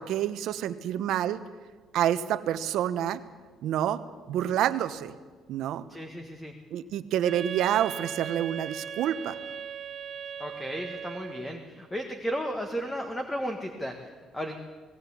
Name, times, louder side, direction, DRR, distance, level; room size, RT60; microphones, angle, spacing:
voice 1, 0.0-1.4 1.9-3.2 3.6-4.0 4.3-5.1 5.5-5.8 6.7-9.4, right 11 dB, 70° right, 11 dB, 1.0 m, -28 dB
voice 2, 5.9-6.5 10.4-14.6, equal, 10° left, 4 dB, 1.7 m, -34 dB
Wind instrument woodwind instrument, 7.2-11.7, right 7 dB, 40° right, 0.8 m, -38 dB
19.0 x 18.0 x 8.5 m, 1.4 s
cardioid pair, 130°, 0 cm